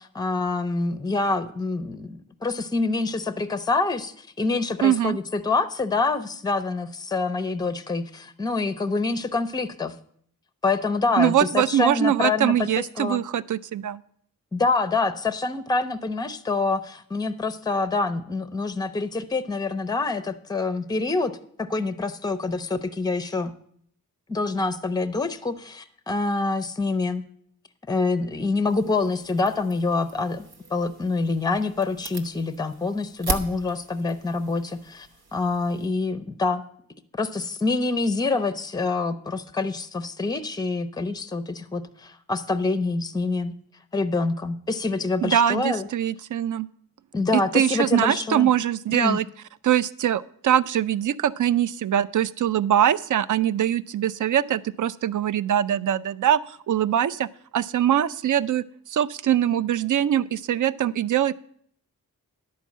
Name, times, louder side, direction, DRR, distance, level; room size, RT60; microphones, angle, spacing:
voice 1, 0.0-9.9 10.6-12.5 13.0-13.2 14.5-21.3 21.6-23.5 24.3-27.2 27.9-36.6 37.1-43.5 43.9-45.9 47.1-48.5 48.9-49.2, left 3 dB, 10° left, 12 dB, 0.5 m, -26 dB
voice 2, 4.8-5.2 11.2-14.0 45.2-46.7 47.3-49.2 49.6-61.3, right 10 dB, 55° right, 17 dB, 0.4 m, -23 dB
sound 1, 28.7-35.9, right 2 dB, 90° right, 0.9 m, -38 dB
10.5 x 4.6 x 7.2 m, 0.65 s
cardioid pair, 60°, 37 cm